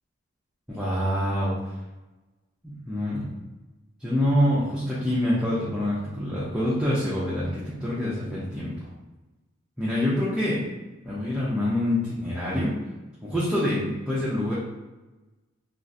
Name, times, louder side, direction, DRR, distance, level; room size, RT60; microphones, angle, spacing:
voice 1, 0.7-1.6 2.6-3.3 4.0-8.8 9.8-10.7 11.0-12.7 13.2-14.5, left 1 dB, 5° right, -10 dB, 0.5 m, -26 dB
3.5 x 2.5 x 2.6 m, 1.1 s
head